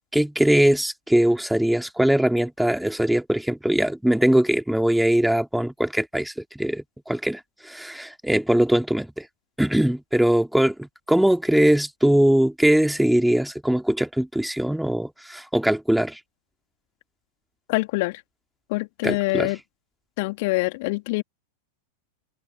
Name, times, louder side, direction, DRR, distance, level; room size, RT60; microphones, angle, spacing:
voice 1, 0.1-9.3 9.6-16.2 19.0-19.5, right 1 dB, ahead, 3.2 m, -21 dB
voice 2, 17.7-18.2 18.7-19.6 20.2-21.2, left 24 dB, 50° left, 3.2 m, -25 dB
figure-of-eight pair, 90°, 0 cm